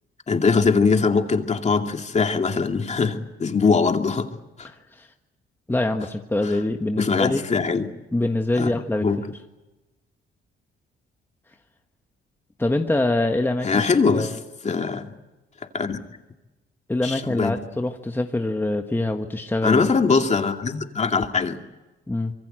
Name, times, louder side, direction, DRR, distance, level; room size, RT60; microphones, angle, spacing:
voice 1, 0.3-4.3 4.6-4.7 7.0-7.9 8.6-9.2 13.6-14.3 14.6-15.1 15.7-16.0 17.0-17.5 19.6-21.6, left 4 dB, 35° left, 5 dB, 2.4 m, -22 dB
voice 2, 4.6-5.1 5.7-7.4 8.1-9.0 12.6-13.8 14.1-14.4 16.9-19.8 22.1-22.3, left 2 dB, 10° left, 4 dB, 1.5 m, -24 dB
25.5 x 22.5 x 7.8 m, 1.1 s
cardioid pair, 90°, 20 cm